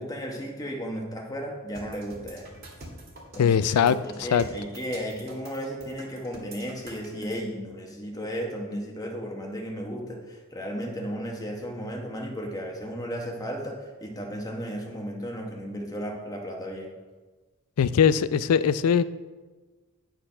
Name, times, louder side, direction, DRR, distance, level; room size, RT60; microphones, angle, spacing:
voice 1, 0.0-2.5 3.3-16.9, equal, 15° left, 1 dB, 1.1 m, -34 dB
sound 1, 1.7-7.3, right 1 dB, 45° right, 1.9 m, -45 dB
voice 2, 3.4-4.0 4.3-4.4 17.8-19.0, left 7 dB, 85° left, 15 dB, 0.4 m, -20 dB
9.6 x 4.5 x 5.5 m, 1.3 s
head